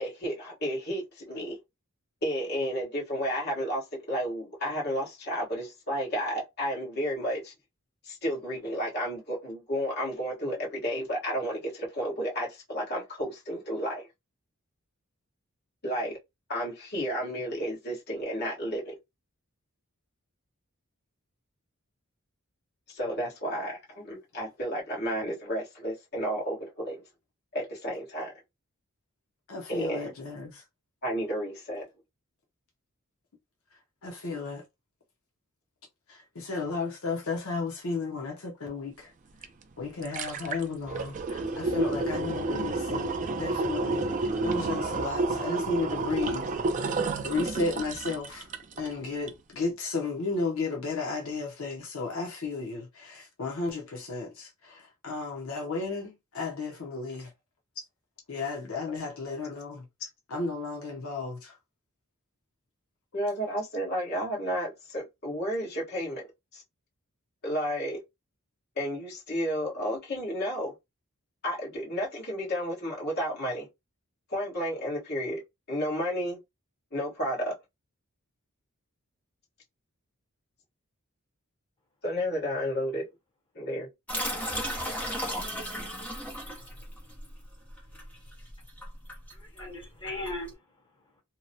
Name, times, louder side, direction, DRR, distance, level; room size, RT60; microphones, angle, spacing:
voice 1, 0.0-1.6 2.2-7.5 8.0-14.1 15.8-16.2 16.5-19.0 22.9-27.0 27.5-28.3 29.7-30.1 31.0-31.9 63.1-66.3 66.5-66.6 67.4-68.0 68.8-70.7 71.4-73.7 74.3-75.4 75.7-76.4 76.9-77.5 82.0-83.1 83.5-83.9, equal, 50° left, 1.2 m, -32 dB
voice 2, 29.5-30.6 34.0-34.6 36.1-39.1 39.8-46.5 46.8-46.9 47.2-48.5 48.8-57.3 58.3-61.5, left 3 dB, 75° left, 0.7 m, -34 dB
sound 1, 39.4-39.5 39.8-48.9 49.3-49.4, right 3 dB, 35° right, 0.3 m, -30 dB
sound 2, 84.1-90.5, equal, 5° left, 0.7 m, -35 dB
voice 3, 89.3-91.2, left 2 dB, 20° left, 1.1 m, -39 dB
2.8 x 2.0 x 2.7 m
head